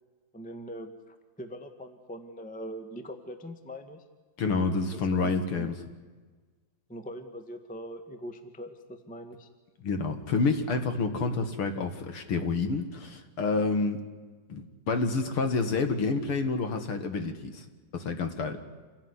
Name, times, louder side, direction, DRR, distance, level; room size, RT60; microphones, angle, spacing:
voice 1, 0.3-4.0 4.9-5.7 6.9-9.5, equal, 5° left, 8 dB, 0.9 m, -42 dB
voice 2, 4.4-5.8 9.8-14.0 14.5-17.6 17.9-18.6, left 4 dB, 50° left, 8 dB, 2.3 m, -28 dB
27.0 x 17.0 x 9.8 m, 1.4 s
omnidirectional pair, 3.5 m